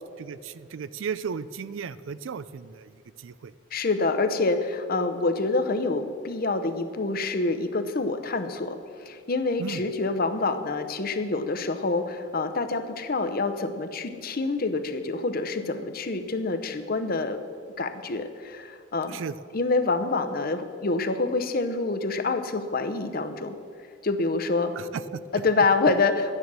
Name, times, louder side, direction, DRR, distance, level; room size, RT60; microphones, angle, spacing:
voice 1, 0.2-3.5 9.6-9.8 19.1-19.4 24.8-25.2, right 6 dB, 70° right, 16 dB, 0.4 m, -35 dB
voice 2, 3.7-17.4 17.8-19.2 19.5-23.5 24.0-24.7 25.3-26.4, left 3 dB, 45° left, 9 dB, 0.7 m, -27 dB
12.0 x 9.8 x 6.2 m, 2.3 s
head